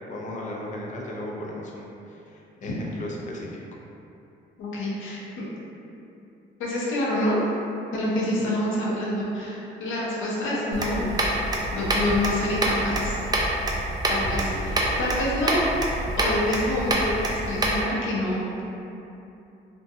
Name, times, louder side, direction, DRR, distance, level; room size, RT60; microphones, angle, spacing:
voice 1, 0.1-3.6 14.4-14.8, left 1 dB, 40° left, -2 dB, 0.5 m, -36 dB
voice 2, 4.6-5.5 6.6-7.4 7.9-11.2 11.7-13.2 14.1-15.6 16.2-18.6, left 1 dB, 80° left, -5 dB, 0.7 m, -27 dB
sound 1, 10.7-17.8, right 1 dB, 20° right, 0.4 m, -26 dB
2.6 x 2.2 x 2.6 m, 2.8 s
cardioid pair, 90°, 20 cm